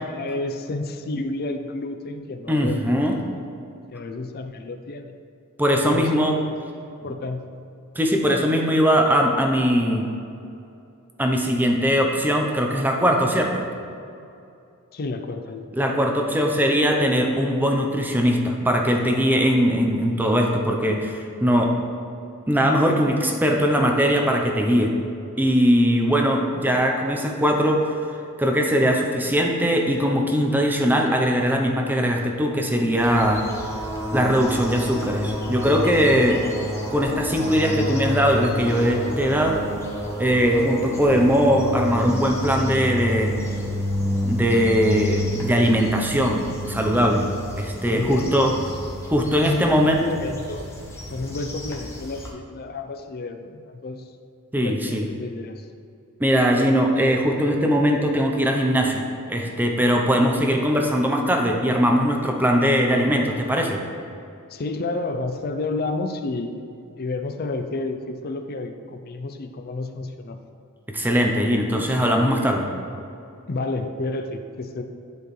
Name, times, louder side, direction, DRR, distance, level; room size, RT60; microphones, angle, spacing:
voice 1, 0.1-3.0 3.3-3.4 3.9-5.1 5.8-6.6 7.0-7.4 14.9-15.7 47.9-48.6 49.4-50.7 51.1-54.1 54.6-55.7 64.5-70.4 73.5-74.8, left 2 dB, 45° left, 7 dB, 0.5 m, -30 dB
voice 2, 2.5-3.2 5.6-6.4 8.0-10.0 11.2-13.6 15.8-21.7 22.5-24.9 25.4-33.5 34.1-36.4 36.9-39.6 40.2-43.3 44.2-47.3 47.6-48.5 49.1-50.0 54.5-55.1 56.2-63.8 70.9-72.7, equal, 10° right, 2 dB, 0.7 m, -20 dB
sound 1, 33.0-52.3, equal, 15° left, 1.0 m, -30 dB
10.5 x 4.6 x 3.2 m, 2.6 s
head